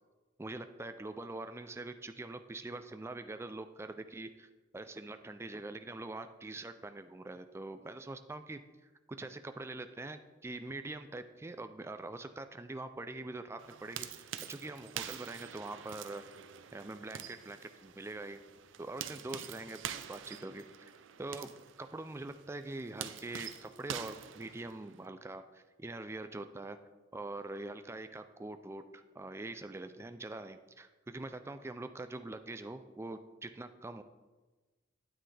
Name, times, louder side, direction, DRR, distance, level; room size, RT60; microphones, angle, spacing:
voice 1, 0.4-8.6 9.1-16.3 16.7-18.4 18.8-19.8 20.1-20.9 21.2-26.8 27.1-34.0, right 2 dB, 15° right, 9 dB, 0.3 m, -44 dB
sound 1, 13.6-25.1, right 9 dB, 70° right, 0.5 m, -46 dB
9.2 x 9.1 x 3.3 m, 1.2 s
head